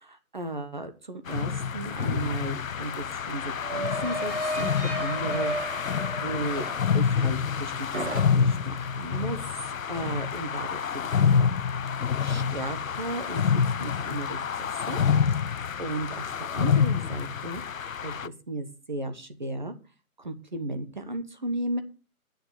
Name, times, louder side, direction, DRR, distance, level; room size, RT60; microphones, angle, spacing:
voice 1, 0.0-6.7 6.9-15.0 15.4-17.6 18.0-19.7 20.2-21.8, right 2 dB, 30° right, 9 dB, 1.1 m, -35 dB
sound 1, 1.3-18.3, left 7 dB, 65° left, 0.7 m, -27 dB
sound 2, 2.1-2.2 2.4-7.6 7.9-8.7, right 1 dB, 50° right, 2.7 m, -34 dB
9.9 x 6.6 x 8.4 m, 0.34 s
hypercardioid pair, 175°, 44 cm